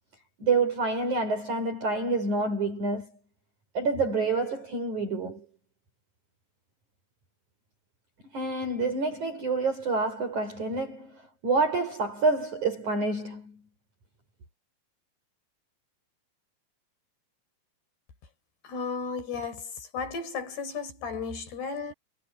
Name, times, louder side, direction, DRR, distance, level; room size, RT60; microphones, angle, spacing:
voice 1, 0.4-3.1 3.7-5.5 8.3-13.6, right 3 dB, 40° right, 7.7 m, -28 dB
voice 2, 18.6-21.9, left 5 dB, 55° left, 7.8 m, -34 dB
omnidirectional pair, 5.6 m